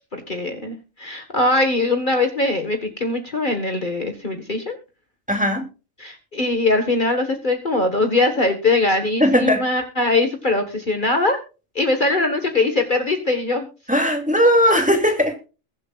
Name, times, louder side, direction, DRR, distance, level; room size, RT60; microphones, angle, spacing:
voice 1, 0.1-4.8 6.0-11.4 11.8-13.7, left 2 dB, 40° left, 5 dB, 1.8 m, -21 dB
voice 2, 5.3-5.6 9.2-9.6 13.9-15.3, equal, 5° right, 3 dB, 2.7 m, -17 dB
22.0 x 7.7 x 2.4 m, 0.32 s
omnidirectional pair, 1.3 m